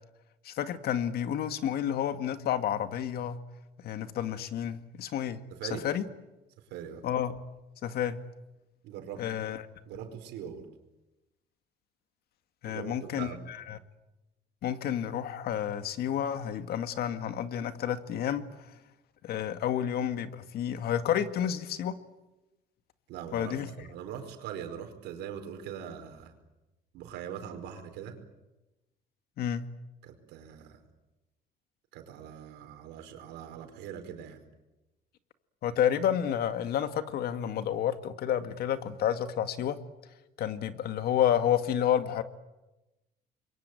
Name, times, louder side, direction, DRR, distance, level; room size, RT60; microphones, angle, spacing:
voice 1, 0.5-3.4 3.8-5.4 5.8-6.0 7.0-7.3 7.8-8.2 9.2-9.6 12.6-13.3 13.7-13.8 14.6-18.4 19.2-21.9 23.3-23.7 29.4-29.6 35.6-39.8 40.4-42.2, left 10 dB, 70° left, 10 dB, 2.1 m, -30 dB
voice 2, 5.5-5.8 6.7-7.0 8.8-9.2 9.9-10.7 12.6-13.4 23.1-26.3 26.9-28.2 30.0-30.8 31.9-34.4, right 9 dB, 90° right, 6 dB, 4.8 m, -42 dB
27.5 x 23.0 x 9.2 m, 1.0 s
cardioid pair, 110°, 17 cm